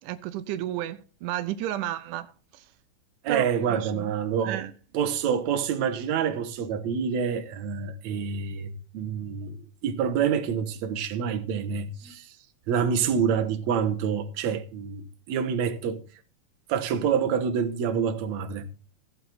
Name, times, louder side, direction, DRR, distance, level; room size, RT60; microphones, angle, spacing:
voice 1, 0.0-2.7 3.3-4.1 4.4-4.7 13.0-13.1, right 12 dB, 90° right, 2.3 m, -33 dB
voice 2, 3.2-4.6 4.9-9.6 9.8-12.3 12.7-16.0 16.7-18.7, right 7 dB, 70° right, 2.4 m, -27 dB
15.0 x 7.9 x 4.2 m
omnidirectional pair, 3.6 m